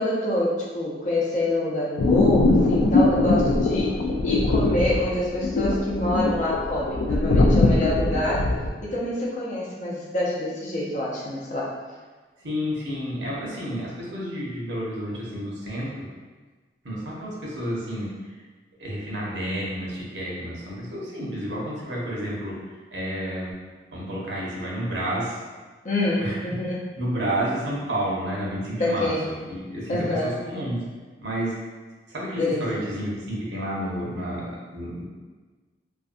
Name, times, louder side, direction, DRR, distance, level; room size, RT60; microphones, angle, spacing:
voice 1, 0.0-4.0 4.2-8.5 8.8-11.7 25.8-26.9 28.8-29.3 29.9-30.3 32.4-32.8, left 1 dB, 45° left, -5 dB, 0.6 m, -26 dB
sound 1, 2.0-8.7, left 2 dB, 90° left, 0.3 m, -21 dB
voice 2, 12.4-16.1 16.8-18.3 18.8-22.6 22.9-23.5 23.9-25.4 26.1-26.4 27.0-29.1 29.5-30.8 31.2-31.6 32.1-35.0, equal, 85° right, -5 dB, 0.7 m, -30 dB
2.5 x 2.3 x 2.4 m, 1.4 s
head